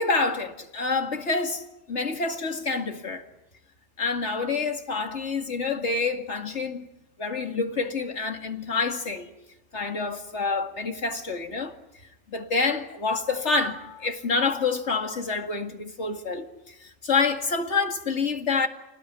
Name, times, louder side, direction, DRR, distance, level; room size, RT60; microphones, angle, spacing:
voice 1, 0.0-3.2 4.0-6.9 7.2-9.3 9.7-11.7 12.3-18.7, left 4 dB, 65° left, 2.5 m, -27 dB
29.5 x 19.5 x 9.6 m
omnidirectional pair, 1.3 m